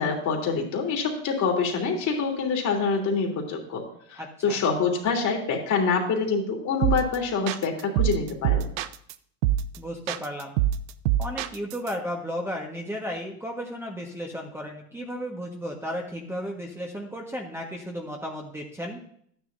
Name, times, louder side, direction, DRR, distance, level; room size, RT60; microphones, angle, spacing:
voice 1, 0.0-8.7, left 5 dB, 45° left, 1 dB, 3.0 m, -26 dB
voice 2, 4.2-4.6 9.8-10.6 11.2-19.0, equal, 5° right, 0 dB, 1.5 m, -34 dB
sound 1, 6.8-7.2 7.5-9.1 9.4-9.8 10.1-11.9, right 12 dB, 75° right, 0.7 m, -25 dB
12.5 x 9.8 x 2.7 m, 0.65 s
hypercardioid pair, 90°, 41 cm